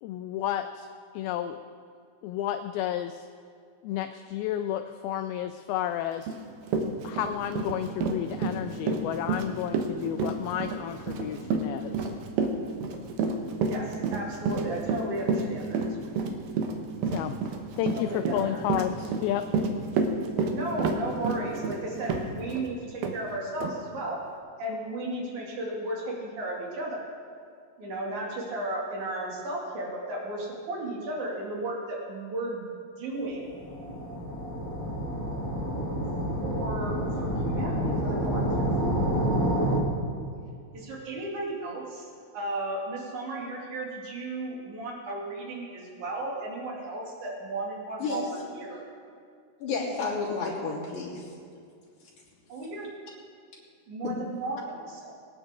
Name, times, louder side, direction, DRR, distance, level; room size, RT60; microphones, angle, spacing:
voice 1, 0.0-0.9 1.1-1.6 2.2-3.3 3.8-6.3 6.8-12.1 17.1-17.3 17.7-19.4, left 11 dB, 85° left, 8 dB, 2.2 m, -31 dB
Run, 6.3-6.4 6.7-22.7 23.0-23.2 23.6-23.7, right 4 dB, 70° right, 2.6 m, -29 dB
voice 2, 13.7-15.8 17.9-18.6 20.5-24.2 24.6-27.1 27.8-32.6 33.0-33.5 36.4-38.6 40.7-42.1 42.3-48.8 52.5-52.9 53.9-55.2, right 2 dB, 50° right, -3 dB, 3.6 m, -34 dB
sound 1, 33.4-39.8, right 1 dB, 15° left, 0.7 m, -28 dB
voice 3, 49.6-51.2 54.0-54.1, left 4 dB, 50° left, -6 dB, 4.5 m, -31 dB
24.0 x 10.0 x 3.8 m, 2.3 s
omnidirectional pair, 4.7 m